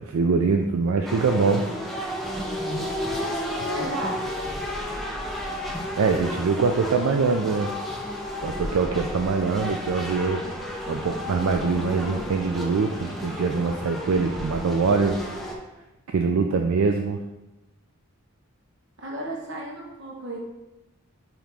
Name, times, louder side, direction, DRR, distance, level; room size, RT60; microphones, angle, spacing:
voice 1, 0.0-1.7 6.0-7.7 8.4-10.4 10.9-15.2 16.1-17.2, right 4 dB, 80° right, 4 dB, 0.4 m, -23 dB
sound 1, 1.1-15.6, equal, ahead, 0.6 m, -32 dB
voice 2, 3.6-4.2 19.0-20.4, right 1 dB, 55° right, -2 dB, 1.3 m, -33 dB
8.7 x 3.1 x 3.5 m, 0.99 s
head